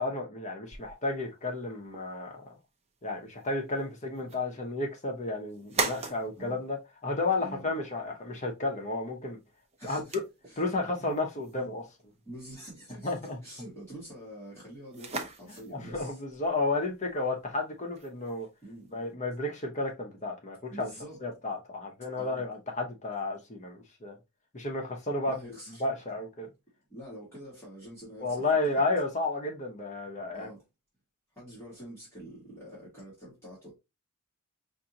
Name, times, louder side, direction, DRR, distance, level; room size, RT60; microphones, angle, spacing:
voice 1, 0.0-2.4 3.0-9.4 9.8-10.2 10.6-11.8 13.0-13.4 15.7-18.5 18.9-20.9 21.2-24.2 24.5-25.3 25.8-26.5 28.2-30.5, left 2 dB, 35° left, 0.8 m, -32 dB
sound 1, 0.7-19.1, right 4 dB, 30° right, 0.6 m, -43 dB
voice 2, 7.4-7.7 9.8-10.2 10.5-10.6 11.0-11.2 11.6-11.7 12.2-13.1 13.4-16.2 18.6-18.9 20.7-21.2 22.2-22.5 25.3-25.8 26.9-28.4 28.7-28.8 30.3-30.6 31.3-33.7, right 1 dB, 10° left, 1.9 m, -46 dB
5.2 x 2.6 x 2.8 m
head